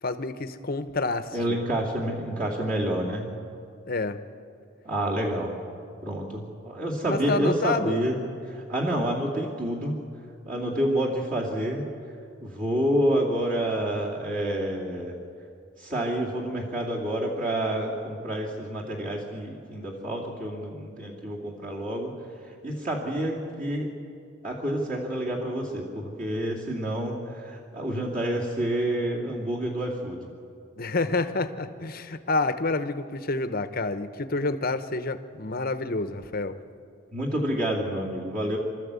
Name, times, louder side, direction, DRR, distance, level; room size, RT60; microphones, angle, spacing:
voice 1, 0.0-1.4 3.9-4.2 7.1-8.0 30.8-36.6, left 3 dB, 45° left, 10 dB, 0.9 m, -28 dB
voice 2, 1.3-3.3 4.8-5.6 6.0-8.2 8.5-10.0 10.5-11.8 12.4-15.1 15.8-22.1 22.6-23.9 24.4-30.2 37.1-38.6, right 1 dB, 35° right, -3 dB, 2.6 m, -28 dB
26.0 x 13.5 x 8.3 m, 2.4 s
head